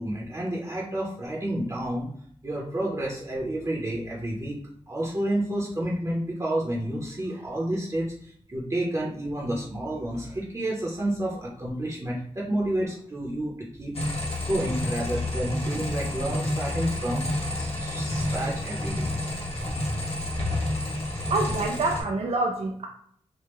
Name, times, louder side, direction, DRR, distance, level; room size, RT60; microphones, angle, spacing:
voice 1, 0.0-2.1 2.4-4.6 4.9-14.0 14.4-17.2 17.6-19.1, right 1 dB, 30° right, -4 dB, 0.7 m, -30 dB
sound 1, 13.9-22.0, left 1 dB, 65° left, 1.0 m, -29 dB
voice 2, 21.3-22.8, right 2 dB, 70° right, 2 dB, 0.3 m, -26 dB
3.4 x 2.1 x 3.1 m, 0.64 s
wide cardioid pair, 95°, 11 cm